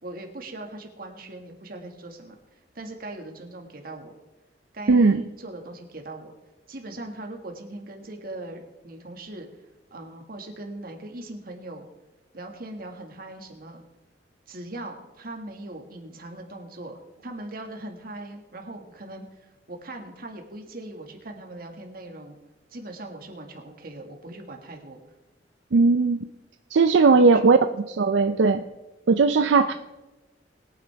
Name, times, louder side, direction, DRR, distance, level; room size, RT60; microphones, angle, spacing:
voice 1, 0.0-4.1 4.7-6.3 6.7-9.6 9.9-11.9 12.3-13.8 14.5-22.4 22.7-25.0 27.1-27.7 28.2-28.4 29.7-29.8, right 1 dB, 55° right, 3 dB, 1.9 m, -40 dB
voice 2, 4.9-5.2 25.7-26.3 26.7-27.6 28.0-28.6 29.1-29.7, right 4 dB, 80° right, 8 dB, 0.5 m, -18 dB
21.0 x 9.2 x 3.5 m, 1.1 s
head